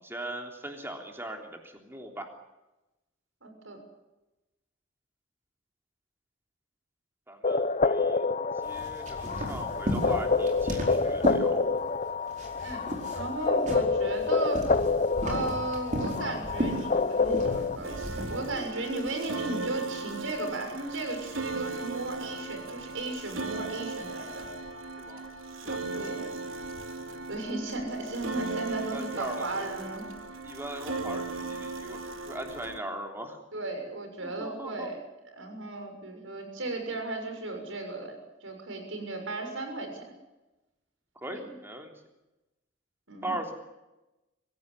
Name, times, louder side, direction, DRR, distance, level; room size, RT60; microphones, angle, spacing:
voice 1, 0.0-2.3 7.3-8.2 8.6-11.8 25.0-25.3 25.6-26.0 28.9-29.7 30.4-32.0 32.3-33.4 34.2-34.9 41.2-41.9 43.2-43.5, right 1 dB, 10° right, 3 dB, 3.4 m, -39 dB
voice 2, 3.4-3.8 12.6-12.8 13.1-14.7 15.2-24.4 25.9-26.2 27.3-30.1 33.5-35.0 35.3-38.1 38.4-40.0 41.3-41.5 43.1-43.3, right 2 dB, 70° right, 5 dB, 6.7 m, -35 dB
sound 1, 7.4-17.8, left 4 dB, 35° left, 0.9 m, -28 dB
sound 2, 8.6-12.0 12.3-18.6, equal, 35° right, 4.7 m, -35 dB
sound 3, 17.8-32.8, right 3 dB, 90° right, 2.9 m, -37 dB
25.0 x 16.5 x 9.9 m, 1.0 s
head